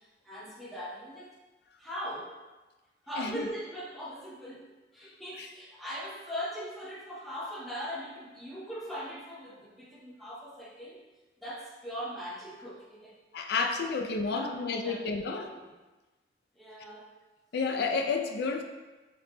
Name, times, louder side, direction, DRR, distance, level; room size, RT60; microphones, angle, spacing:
voice 1, 0.0-1.3 1.8-2.4 3.1-11.0 11.4-13.2 14.3-15.7 16.6-17.1, equal, ahead, -5 dB, 0.5 m, -40 dB
voice 2, 3.2-3.5 5.4-5.5 13.3-15.5 17.5-18.6, left 4 dB, 65° left, 4 dB, 0.4 m, -30 dB
3.4 x 2.1 x 3.7 m, 1.2 s
head